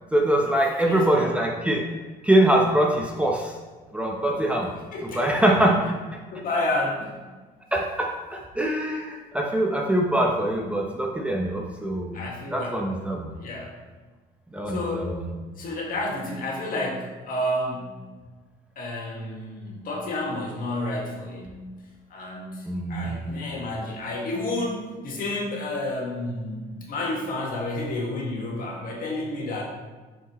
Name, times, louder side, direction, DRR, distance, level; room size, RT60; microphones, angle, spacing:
voice 1, 0.1-1.9 2.2-3.5 3.9-4.8 5.1-6.0 7.7-12.2 12.5-13.3 14.5-15.3 22.7-23.3, right 1 dB, 5° right, 0 dB, 0.7 m, -23 dB
voice 2, 0.8-1.3 4.9-5.4 6.3-7.2 12.1-12.8 13.3-13.7 14.7-15.2 15.5-18.0 18.7-21.7 22.1-29.6, left 1 dB, 55° left, -2 dB, 1.6 m, -30 dB
6.9 x 4.9 x 3.0 m, 1.3 s
cardioid pair, 110°, 17 cm